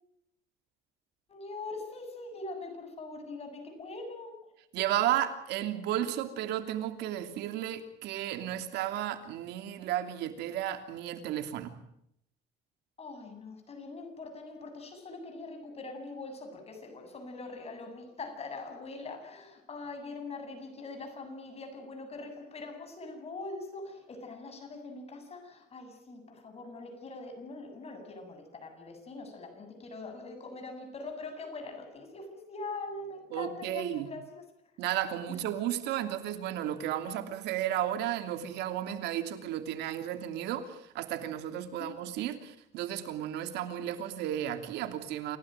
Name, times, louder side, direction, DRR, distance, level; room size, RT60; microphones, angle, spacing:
voice 1, 1.3-4.5 13.0-34.4 35.3-35.4 41.8-41.9, left 3 dB, 35° left, 6 dB, 7.8 m, -43 dB
voice 2, 4.7-11.8 33.3-34.1 34.8-45.4, right 11 dB, 85° right, 8 dB, 2.9 m, -33 dB
29.0 x 17.0 x 9.1 m, 0.76 s
cardioid pair, 110°, 17 cm